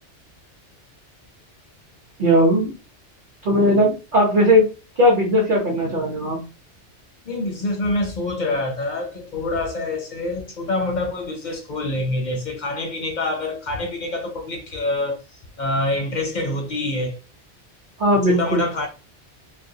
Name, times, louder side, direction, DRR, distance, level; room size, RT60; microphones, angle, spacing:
voice 1, 2.2-2.7 3.4-4.7 5.0-6.4 18.0-18.6, equal, 50° right, 0.9 m, -17 dB
voice 2, 7.3-15.2 15.6-17.2 18.1-18.9, left 2 dB, 55° left, 0.5 m, -26 dB
2.4 x 2.1 x 2.6 m
omnidirectional pair, 1.2 m